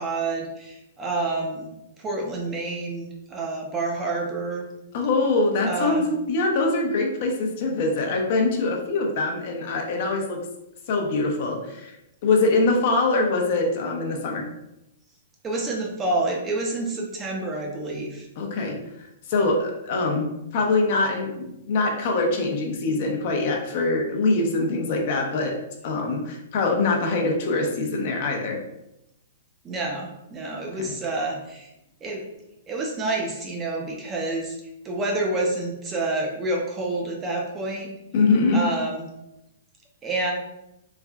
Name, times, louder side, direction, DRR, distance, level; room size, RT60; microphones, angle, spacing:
voice 1, 0.0-1.7 2.0-4.7 5.6-6.1 15.4-18.3 29.6-31.7 32.0-32.2 32.7-34.6 34.8-37.9 38.5-39.1 40.0-40.3, right 2 dB, 20° right, 0 dB, 0.6 m, -28 dB
voice 2, 4.9-10.4 10.9-12.0 12.2-14.5 18.4-18.8 19.3-25.5 25.8-28.6 30.8-30.9 38.1-38.6, left 3 dB, 55° left, 1 dB, 0.6 m, -23 dB
3.2 x 2.5 x 2.3 m, 0.87 s
hypercardioid pair, 135°, 0 cm